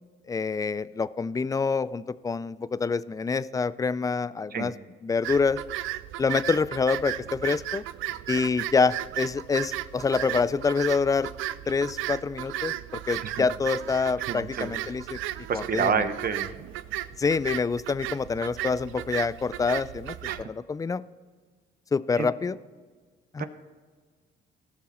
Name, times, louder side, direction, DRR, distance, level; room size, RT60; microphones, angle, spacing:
voice 1, 0.3-4.7 5.0-5.6 6.2-7.8 8.3-11.3 11.7-15.2 15.5-16.1 17.2-21.0 21.9-22.6 23.3-23.4, left 4 dB, 15° left, 17 dB, 0.3 m, -26 dB
sound 1, 5.2-20.4, right 14 dB, 90° right, 0.4 m, -35 dB
voice 2, 14.3-14.7 15.5-16.5 20.3-20.5 22.2-22.3 23.4-23.5, right 6 dB, 50° right, 10 dB, 1.0 m, -29 dB
17.0 x 6.1 x 4.3 m, 1.5 s
cardioid pair, 90°, 20 cm